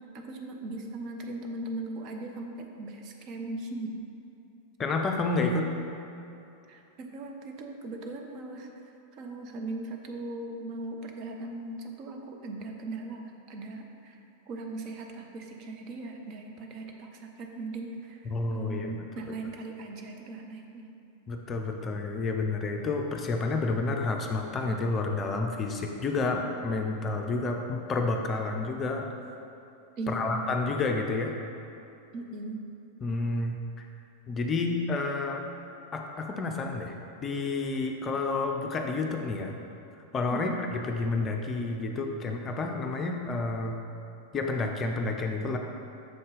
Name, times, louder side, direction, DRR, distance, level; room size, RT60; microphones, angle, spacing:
voice 1, 0.1-3.9 6.7-8.7 9.2-14.2 14.5-20.9 30.0-30.5 32.1-32.6 40.3-40.5, right 2 dB, 40° right, 2 dB, 0.6 m, -39 dB
voice 2, 4.8-5.7 18.3-19.0 21.3-29.1 30.1-31.3 33.0-33.9 34.3-35.4 35.9-36.9 37.2-39.6 40.1-40.5 40.9-43.8 44.3-45.6, left 3 dB, 25° left, 2 dB, 0.5 m, -30 dB
6.7 x 3.8 x 4.0 m, 2.8 s
figure-of-eight pair, 90°, 0 cm